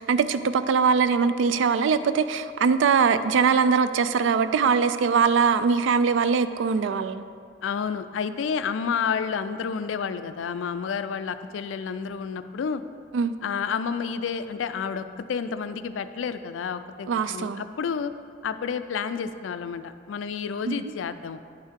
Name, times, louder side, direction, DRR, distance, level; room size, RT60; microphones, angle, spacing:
voice 1, 0.0-7.2 13.1-13.3 17.1-17.6 20.7-20.8, right 5 dB, 80° right, 12 dB, 0.3 m, -22 dB
voice 2, 7.6-12.8 13.4-18.1 18.4-21.4, left 6 dB, 90° left, 11 dB, 0.4 m, -30 dB
10.0 x 4.5 x 3.6 m, 2.2 s
head